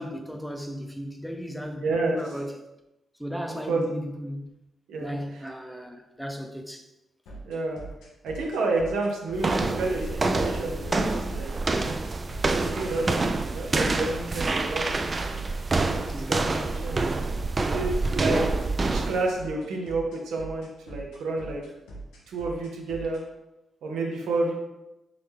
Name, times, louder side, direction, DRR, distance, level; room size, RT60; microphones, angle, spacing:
voice 1, 0.0-2.5 3.2-4.5 5.0-6.9 16.1-16.8, equal, ahead, 0.6 m, -36 dB
voice 2, 1.8-2.2 3.7-3.8 4.9-5.4 7.5-7.8 8.2-11.5 12.4-14.9 15.8-17.0 17.7-18.4 18.8-21.6 22.3-23.2 23.8-24.5, right 3 dB, 80° right, 0.7 m, -30 dB
sound 1, 7.3-23.2, right 2 dB, 85° left, 0.7 m, -42 dB
sound 2, 9.4-19.3, right 3 dB, 45° right, 0.3 m, -27 dB
3.8 x 3.0 x 3.4 m
hypercardioid pair, 40°, 0 cm